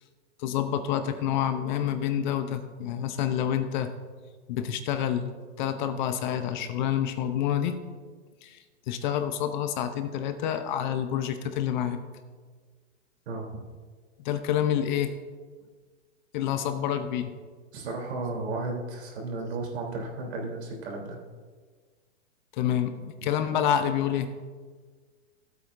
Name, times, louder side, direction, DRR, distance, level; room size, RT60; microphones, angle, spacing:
voice 1, 0.4-3.9 4.5-5.3 5.6-7.8 8.4-8.6 8.9-12.0 14.2-15.1 16.3-17.3 22.6-24.3, left 9 dB, 40° left, 9 dB, 0.8 m, -28 dB
voice 2, 13.2-13.6 17.7-21.2, right 3 dB, 65° right, -1 dB, 3.4 m, -34 dB
16.0 x 8.5 x 2.6 m, 1.5 s
hypercardioid pair, 140°, 36 cm